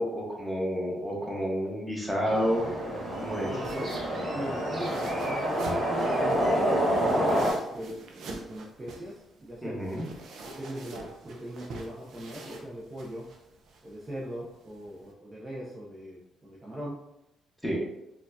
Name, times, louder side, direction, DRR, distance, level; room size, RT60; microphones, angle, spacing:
voice 1, 0.0-2.7 3.2-3.5 9.6-10.1 17.6-17.8, equal, 5° right, -3 dB, 1.1 m, -29 dB
sound 1, 2.2-7.5, equal, 40° right, 1.2 m, -28 dB
sound 2, 2.5-15.1, right 3 dB, 70° right, 0.6 m, -46 dB
voice 2, 3.4-3.9 4.3-6.5 7.0-8.0 8.3-9.2 9.5-9.8 10.4-13.2 13.8-17.0, equal, 25° right, -5 dB, 0.7 m, -39 dB
4.2 x 2.3 x 2.7 m, 0.89 s
cardioid pair, 90°, 0 cm